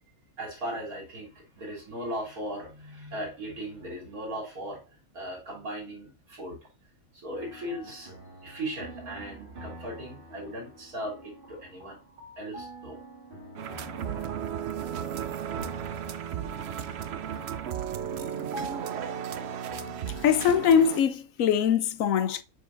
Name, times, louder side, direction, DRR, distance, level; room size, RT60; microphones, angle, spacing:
voice 1, 0.4-6.6 7.1-8.2 8.4-12.0 12.4-13.0, right 1 dB, 85° right, 3.6 m, -38 dB
sound 1, 7.3-20.7, right 1 dB, 40° right, 1.9 m, -46 dB
sound 2, 13.6-21.0, right 9 dB, 65° right, 0.7 m, -34 dB
voice 2, 20.2-22.4, left 8 dB, 70° left, 1.0 m, -22 dB
8.2 x 5.4 x 2.5 m
omnidirectional pair, 1.5 m